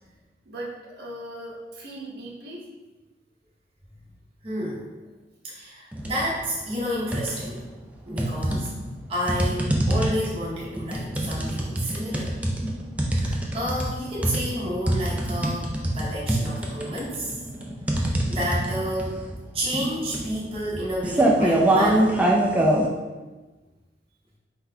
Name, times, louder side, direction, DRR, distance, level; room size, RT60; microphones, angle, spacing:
voice 1, 0.4-2.6, right 1 dB, 60° right, -4 dB, 1.0 m, -38 dB
voice 2, 4.4-4.9 5.4-7.6 8.1-8.7 9.1-12.3 13.1-17.4 17.9-19.3 19.5-22.1, equal, 30° right, -6 dB, 0.8 m, -30 dB
sound 1, 5.9-6.3 6.7-7.6 8.2-22.9, right 1 dB, 10° right, 0.4 m, -24 dB
4.4 x 4.0 x 2.7 m, 1.2 s
head